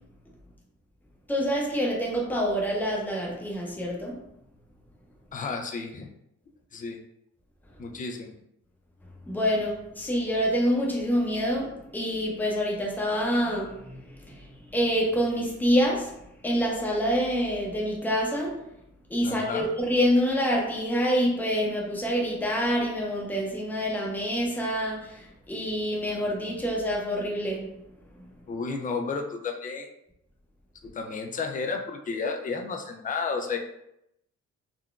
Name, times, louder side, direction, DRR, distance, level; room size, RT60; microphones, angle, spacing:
voice 1, 1.3-4.2 9.3-14.3 14.7-16.1 16.4-18.6 19.1-27.7, equal, 5° left, -3 dB, 0.8 m, -26 dB
voice 2, 5.3-6.1 6.7-7.0 7.8-8.3 19.2-19.7 28.5-29.9 30.8-33.6, left 4 dB, 25° left, 3 dB, 0.4 m, -32 dB
3.7 x 2.2 x 2.4 m, 0.80 s
cardioid pair, 90°, 30 cm